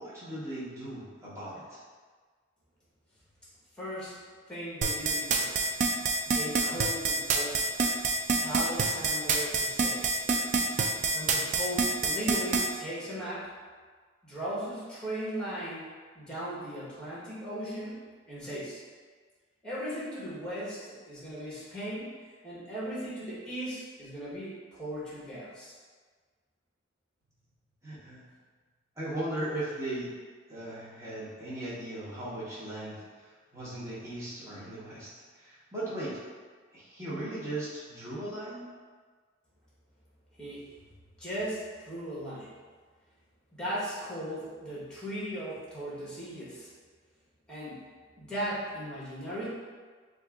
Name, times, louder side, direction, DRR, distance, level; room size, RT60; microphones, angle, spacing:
voice 1, 0.0-1.8 27.8-28.2 29.0-30.1 30.5-36.2 36.7-38.6, right 1 dB, 15° right, -10 dB, 1.2 m, -38 dB
voice 2, 3.8-4.1 4.5-5.7 6.2-7.7 8.4-10.1 11.1-13.5 14.2-15.9 16.1-18.8 19.6-22.1 22.4-25.7 40.4-40.7 41.2-42.5 43.6-46.7 47.5-47.8 48.2-49.5, equal, 5° left, -8 dB, 1.3 m, -37 dB
sound 1, 4.8-12.7, right 4 dB, 40° right, 0.3 m, -26 dB
6.3 x 2.6 x 2.5 m, 1.5 s
head